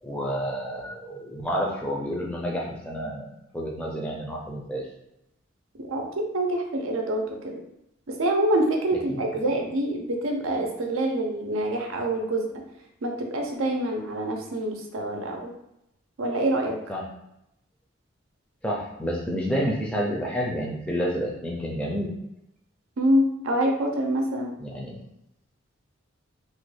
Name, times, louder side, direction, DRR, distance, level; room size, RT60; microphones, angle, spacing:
voice 1, 0.0-3.3 3.5-4.8 9.1-9.2 16.9-17.0 18.6-22.1 24.6-25.0, equal, 5° left, -3 dB, 0.4 m, -29 dB
voice 2, 5.7-7.6 8.1-12.5 13.0-15.5 16.2-16.8 23.0-24.5, right 1 dB, 85° right, 2 dB, 0.6 m, -26 dB
3.1 x 2.2 x 3.1 m, 0.83 s
head